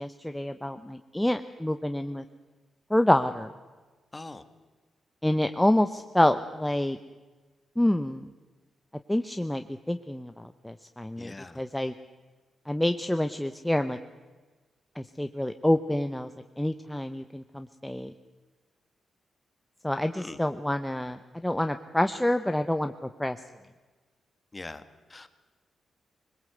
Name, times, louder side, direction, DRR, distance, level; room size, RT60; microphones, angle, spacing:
voice 1, 0.0-2.2 2.9-3.5 5.2-7.0 7.8-8.3 9.1-11.9 12.7-14.0 15.0-16.3 16.6-18.1 19.8-23.4, left 1 dB, 5° left, 8 dB, 0.8 m, -27 dB
voice 2, 4.1-4.4 11.2-11.6 20.1-20.4 24.5-24.8 25.1-25.4, left 2 dB, 25° left, 11 dB, 1.5 m, -42 dB
21.5 x 20.5 x 8.0 m, 1.3 s
cardioid pair, 100°, 0 cm